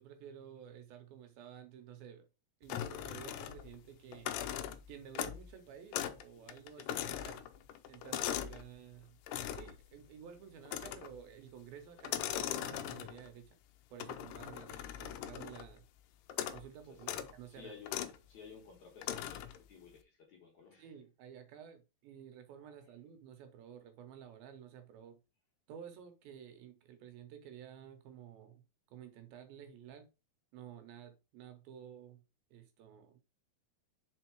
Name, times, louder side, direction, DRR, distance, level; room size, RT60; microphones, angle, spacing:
voice 1, 0.0-2.3 2.6-4.4 4.9-7.4 7.9-9.2 9.5-13.6 13.9-15.9 16.4-17.7 20.8-25.2 25.7-28.6 28.9-30.1 30.5-32.2 32.5-33.2, right 8 dB, 75° right, 2.6 m, -52 dB
sound 1, 2.7-3.8 4.1-5.5 5.9-6.2 6.5-8.6 9.3-9.8 10.7-11.2 12.0-13.3 14.0-15.7 16.3-16.7 17.0-17.3 17.9-18.2 19.0-19.6, left 11 dB, 90° left, 1.8 m, -40 dB
voice 2, 6.3-7.1 14.9-15.1 16.8-20.9 22.6-23.0, left 6 dB, 60° left, 2.1 m, -56 dB
5.2 x 4.6 x 4.5 m
omnidirectional pair, 4.5 m